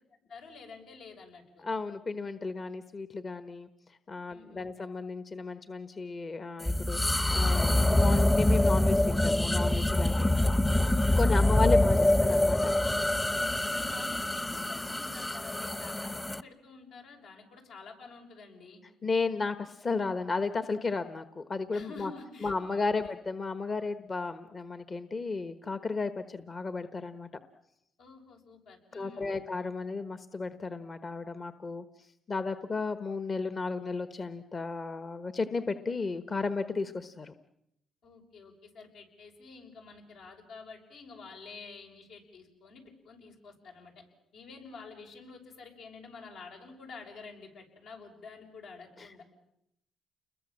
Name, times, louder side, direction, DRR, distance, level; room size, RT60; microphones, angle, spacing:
voice 1, 0.3-1.7 4.3-4.7 10.1-10.5 13.3-18.8 21.7-23.1 28.0-29.4 38.0-44.0 44.3-49.2, left 4 dB, 80° left, 2 dB, 6.7 m, -49 dB
voice 2, 1.6-3.7 4.1-10.3 11.2-12.7 19.0-22.1 22.4-27.3 28.9-37.3 49.0-49.1, left 4 dB, 35° left, 11 dB, 1.2 m, -34 dB
sound 1, 6.6-16.4, left 1 dB, 15° left, 1.0 m, -25 dB
29.5 x 22.0 x 7.5 m, 0.79 s
cardioid pair, 90°, 0 cm